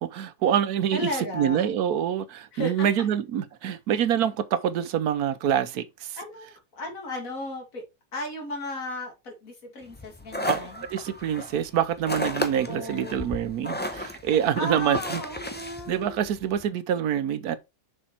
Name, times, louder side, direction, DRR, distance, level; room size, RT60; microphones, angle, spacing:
voice 1, 0.0-6.2 10.5-15.2 15.9-17.6, right 9 dB, 75° right, 1.2 m, -26 dB
voice 2, 0.9-1.7 2.5-2.9 6.2-7.8 8.1-10.8 12.5-13.3 14.6-16.3, left 1 dB, 60° left, 2.7 m, -35 dB
sound 1, 9.9-16.6, left 1 dB, 10° left, 0.5 m, -34 dB
6.4 x 5.1 x 4.3 m
omnidirectional pair, 1.7 m